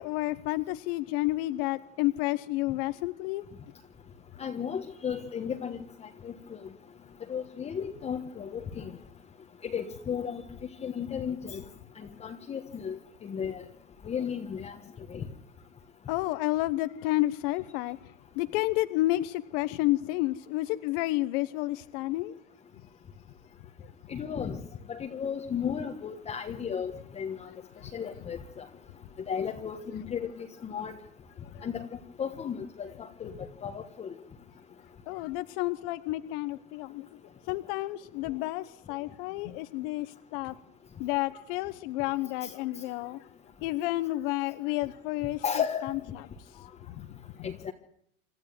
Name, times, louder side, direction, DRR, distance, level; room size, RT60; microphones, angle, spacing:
voice 1, 0.0-3.4 16.1-18.0 18.3-22.3 23.8-23.9 27.8-27.9 31.5-31.7 35.1-37.1 37.4-40.5 41.0-43.2 43.6-45.4 45.8-46.2 46.5-47.5, left 18 dB, 45° left, 13 dB, 1.0 m, -31 dB
voice 2, 4.4-6.3 7.3-8.9 9.6-10.4 10.8-11.6 12.0-13.6 14.0-14.8 15.1-15.3 24.1-24.6 24.9-27.5 27.9-28.6 29.3-30.9 31.6-31.9 32.2-32.9 33.2-33.3 33.6-34.1 42.4-42.5 45.4-45.9 47.4-47.7, left 7 dB, 15° left, 2 dB, 1.4 m, -34 dB
27.0 x 13.5 x 9.4 m, 0.70 s
supercardioid pair, 150°, 39 cm